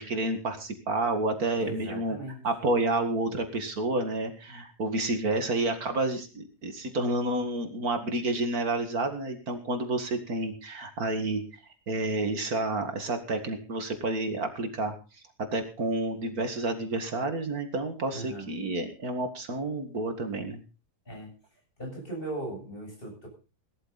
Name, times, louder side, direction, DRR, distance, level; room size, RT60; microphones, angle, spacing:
voice 1, 0.0-2.2 2.4-11.4 11.9-14.9 15.5-20.6, right 2 dB, 65° right, 7 dB, 2.4 m, -30 dB
voice 2, 1.5-2.4 18.1-18.5 21.1-21.4 21.8-23.3, right 1 dB, 35° left, 1 dB, 7.9 m, -38 dB
18.0 x 13.0 x 4.0 m, 0.33 s
omnidirectional pair, 1.7 m